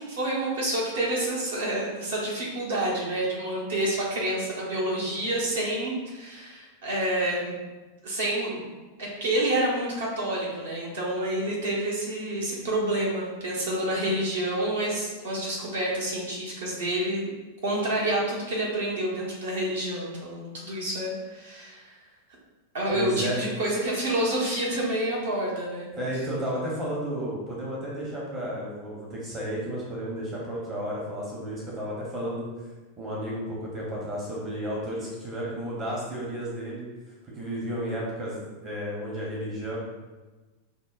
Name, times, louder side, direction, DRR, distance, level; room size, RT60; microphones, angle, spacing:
voice 1, 0.0-7.6 8.0-8.6 9.0-17.4 17.6-21.9 22.7-25.9, right 1 dB, 65° right, -5 dB, 1.0 m, -28 dB
voice 2, 22.9-23.4 25.9-32.5 33.0-36.9 37.2-39.8, equal, 25° right, -4 dB, 0.8 m, -32 dB
5.2 x 2.1 x 2.4 m, 1.2 s
figure-of-eight pair, 90°, 0 cm